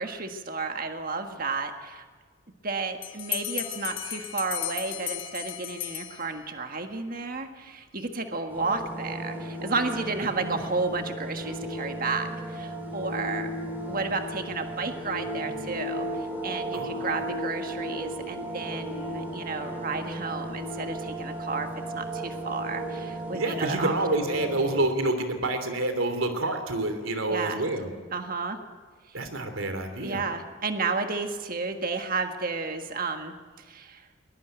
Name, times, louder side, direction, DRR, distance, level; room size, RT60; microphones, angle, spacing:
voice 1, 0.0-2.0 2.6-13.5 13.9-21.7 21.9-23.9 27.3-27.6 28.1-28.6 29.1-29.2 30.0-34.1, right 4 dB, 45° right, 6 dB, 1.6 m, -32 dB
Bell, 3.0-6.6, left 14 dB, 70° left, 1.6 m, -35 dB
sound 1, 8.5-24.8, right 1 dB, 10° right, 4.6 m, -35 dB
voice 2, 10.2-10.6 16.7-17.1 23.3-27.9 29.1-30.2, right 2 dB, 80° right, 8 dB, 3.1 m, -28 dB
21.5 x 21.0 x 9.1 m, 1.5 s
head